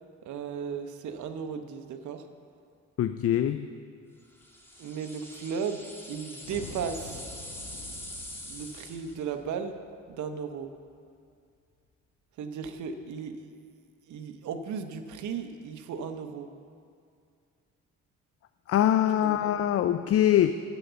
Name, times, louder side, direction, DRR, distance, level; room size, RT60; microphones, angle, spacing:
voice 1, 0.2-2.2 4.8-7.2 7.8-7.9 8.4-9.7 10.1-10.7 12.4-13.5 14.1-16.5 19.2-19.6, right 6 dB, 75° right, 7 dB, 0.9 m, -36 dB
voice 2, 3.0-3.7 18.7-20.5, left 11 dB, 50° left, 11 dB, 0.4 m, -23 dB
sound 1, 4.4-9.2, left 1 dB, 10° left, 2.1 m, -44 dB
sound 2, 6.4-10.8, left 3 dB, 90° left, 1.8 m, -47 dB
10.0 x 8.0 x 6.9 m, 2.3 s
cardioid pair, 90°, 30 cm